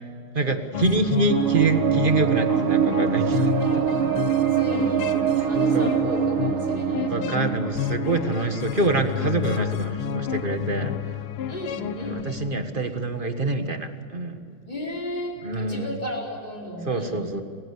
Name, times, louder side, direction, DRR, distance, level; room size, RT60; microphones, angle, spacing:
voice 1, 0.3-3.8 5.4-5.5 5.7-5.9 7.1-10.9 12.0-14.4 15.4-15.9 16.9-17.4, right 3 dB, 25° right, 7 dB, 1.5 m, -25 dB
sound 1, 0.7-13.0, left 8 dB, 90° left, 2.0 m, -30 dB
sound 2, 1.3-9.4, right 9 dB, 75° right, 1.8 m, -24 dB
voice 2, 3.6-4.1 4.5-5.1 5.4-7.4 11.5-12.3 14.7-17.2, equal, 20° left, -2 dB, 5.0 m, -34 dB
30.0 x 15.5 x 8.4 m, 2.3 s
omnidirectional pair, 2.3 m